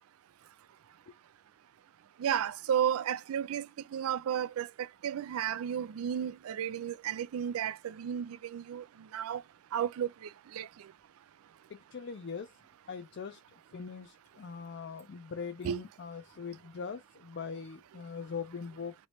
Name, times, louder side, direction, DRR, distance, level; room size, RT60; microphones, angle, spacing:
voice 1, 2.2-3.7 3.9-4.7 5.0-8.8 9.1-9.4 9.7-10.1 10.5-10.7 15.6-15.8, right 9 dB, 90° right, 0.3 m, -32 dB
voice 2, 11.7-12.5 12.9-13.4 13.7-18.9, left 5 dB, 55° left, 0.4 m, -41 dB
3.0 x 3.0 x 2.8 m
head